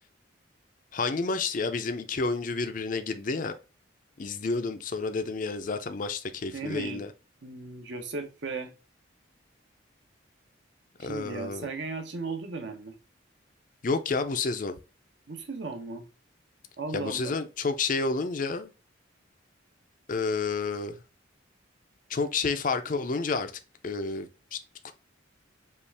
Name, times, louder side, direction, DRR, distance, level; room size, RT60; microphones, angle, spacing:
voice 1, 0.9-3.5 4.2-7.1 11.0-11.7 13.8-14.8 16.9-18.7 20.1-21.0 22.1-23.5 23.8-24.6 24.8-24.9, left 4 dB, 40° left, 0.4 m, -30 dB
voice 2, 6.5-7.0 7.4-8.7 11.0-12.9 15.3-16.1 16.8-17.3, right 4 dB, 65° right, 0.8 m, -36 dB
5.4 x 2.4 x 3.3 m
head